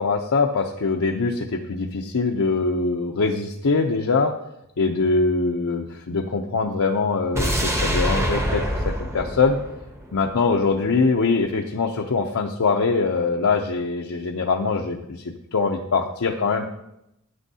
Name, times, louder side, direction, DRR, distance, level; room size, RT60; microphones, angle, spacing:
voice 1, 0.0-4.3 4.8-9.6 10.1-16.7, left 4 dB, 75° left, 1 dB, 0.6 m, -23 dB
sound 1, 7.4-10.5 10.8-10.9, equal, 15° right, 1.0 m, -25 dB
9.6 x 8.3 x 2.8 m, 0.82 s
head